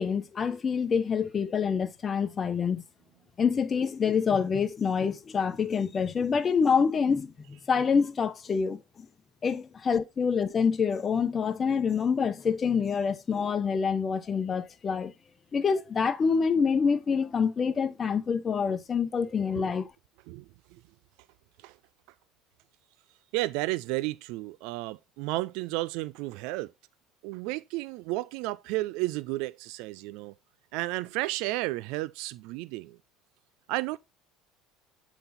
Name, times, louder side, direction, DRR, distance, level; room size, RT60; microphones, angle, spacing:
voice 1, 0.0-2.8 3.4-8.8 9.4-15.1 15.5-19.9, left 6 dB, 35° left, 0.9 m, -26 dB
voice 2, 23.3-26.7 27.2-30.3 30.7-33.0 33.7-34.0, right 19 dB, 70° right, 0.3 m, -32 dB
7.8 x 4.0 x 4.0 m
hypercardioid pair, 75°, 0 cm